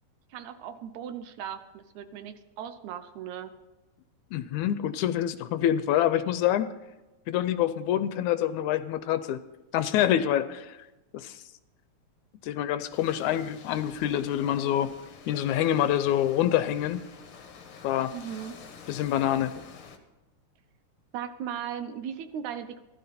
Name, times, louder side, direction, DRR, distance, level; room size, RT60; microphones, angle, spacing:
voice 1, 0.3-3.5 6.7-6.8 18.1-18.6 21.1-22.8, right 9 dB, 75° right, 10 dB, 2.1 m, -37 dB
voice 2, 4.3-6.7 7.3-9.4 9.7-10.8 11.1-11.4 12.4-15.0 15.3-17.0 17.8-18.1 18.9-19.6, left 11 dB, 80° left, 12 dB, 1.9 m, -26 dB
sound 1, 12.9-20.0, left 6 dB, 50° left, 1.8 m, -49 dB
15.5 x 12.5 x 4.3 m, 1.1 s
omnidirectional pair, 3.6 m